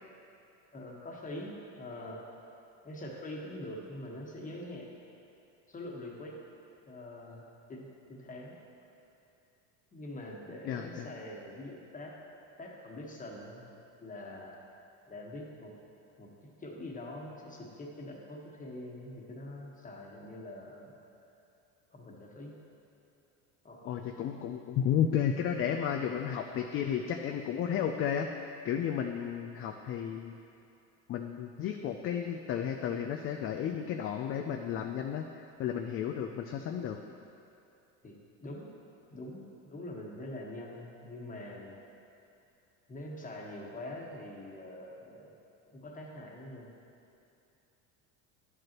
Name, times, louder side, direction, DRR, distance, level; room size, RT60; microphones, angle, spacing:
voice 1, 0.7-2.4 2.8-4.9 5.7-6.4 6.9-7.4 7.7-8.6 9.9-12.2 12.6-13.7 14.0-14.6 15.1-15.7 16.2-20.9 21.9-22.5 23.6-23.9 38.0-38.7 39.1-41.8 42.9-45.3 45.7-46.7, left 1 dB, 20° left, -1 dB, 1.3 m, -44 dB
voice 2, 10.6-11.1 23.8-30.4 31.1-35.2 35.6-37.0, left 8 dB, 40° left, 4 dB, 0.4 m, -33 dB
10.5 x 7.9 x 3.0 m, 2.7 s
supercardioid pair, 115°, 37 cm